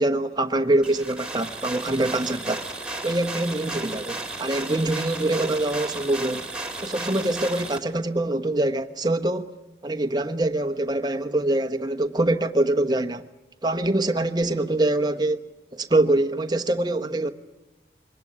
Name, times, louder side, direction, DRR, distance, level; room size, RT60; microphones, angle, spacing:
voice 1, 0.0-2.6 3.0-6.4 6.8-9.4 9.8-13.2 13.6-15.4 15.7-17.3, right 2 dB, 25° right, 1.1 m, -24 dB
sound 1, 0.8-7.8, right 2 dB, 5° right, 2.3 m, -34 dB
24.0 x 19.5 x 9.7 m
head